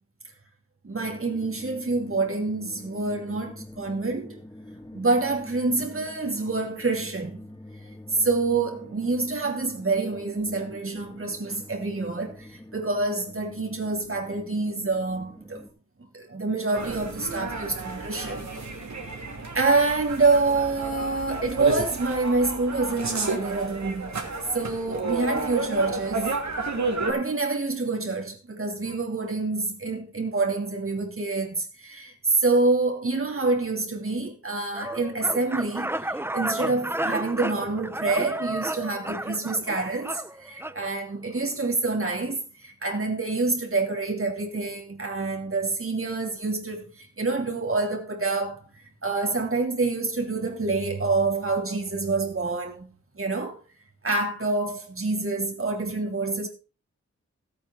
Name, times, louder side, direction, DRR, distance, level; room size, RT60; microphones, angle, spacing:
voice 1, 0.8-4.4 4.9-7.4 8.1-15.6 16.1-19.2 19.5-24.2 24.5-26.3 26.8-52.9 53.1-53.6 54.0-56.5, right 3 dB, 50° right, 3.3 m, -27 dB
sound 1, 0.9-15.7, left 1 dB, 15° left, 2.5 m, -45 dB
sound 2, 16.7-27.1, right 3 dB, 70° right, 2.9 m, -31 dB
sound 3, 34.7-40.8, right 1 dB, 10° right, 0.7 m, -32 dB
14.0 x 8.8 x 4.0 m
cardioid pair, 50°, 29 cm